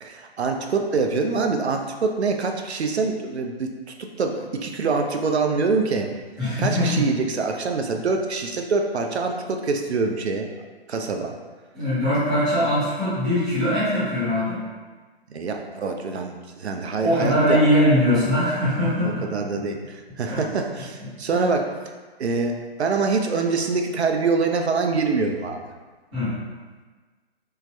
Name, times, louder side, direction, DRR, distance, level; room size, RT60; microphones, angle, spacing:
voice 1, 0.0-3.7 4.0-6.1 6.6-10.5 10.9-11.4 15.3-17.6 19.0-21.7 22.2-25.6, right 4 dB, 85° right, 4 dB, 0.5 m, -25 dB
voice 2, 6.4-7.0 11.7-14.6 17.0-19.2 20.3-20.4 21.3-21.5 26.1-26.3, equal, 5° right, -17 dB, 0.3 m, -21 dB
3.3 x 2.0 x 3.2 m, 1.4 s
figure-of-eight pair, 135°, 32 cm